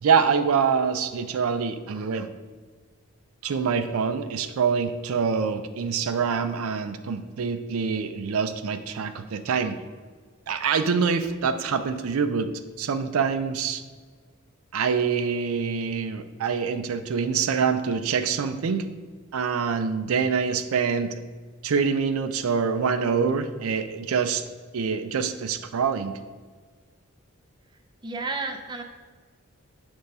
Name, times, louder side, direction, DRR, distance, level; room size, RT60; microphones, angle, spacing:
voice 1, 0.0-2.3 3.4-9.8 10.5-12.5 12.8-13.8 14.7-18.9 19.3-21.2 21.6-24.4 24.7-26.2, right 6 dB, 75° right, 10 dB, 0.4 m, -25 dB
voice 2, 28.0-28.8, right 3 dB, 20° right, 5 dB, 0.5 m, -31 dB
6.7 x 3.5 x 5.3 m, 1.5 s
head